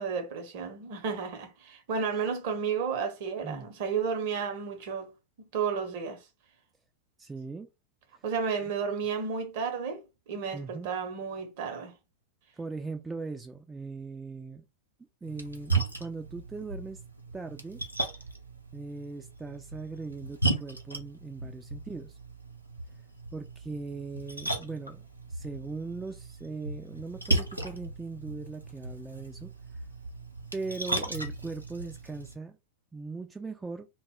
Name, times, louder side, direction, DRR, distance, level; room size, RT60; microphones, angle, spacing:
voice 1, 0.0-5.1 5.5-6.2 8.2-10.0 10.3-11.9, right 6 dB, 50° right, 0.7 m, -32 dB
voice 2, 7.2-7.7 8.1-8.2 8.6-8.7 10.5-10.9 12.5-14.6 15.2-17.0 17.3-17.8 18.7-22.2 23.3-25.0 25.3-29.5 30.5-32.6 32.9-33.9, right 3 dB, 10° right, 0.3 m, -39 dB
Splash splatter, 15.2-32.3, right 3 dB, 85° right, 0.5 m, -36 dB
2.1 x 2.0 x 3.5 m
figure-of-eight pair, 90°, 0 cm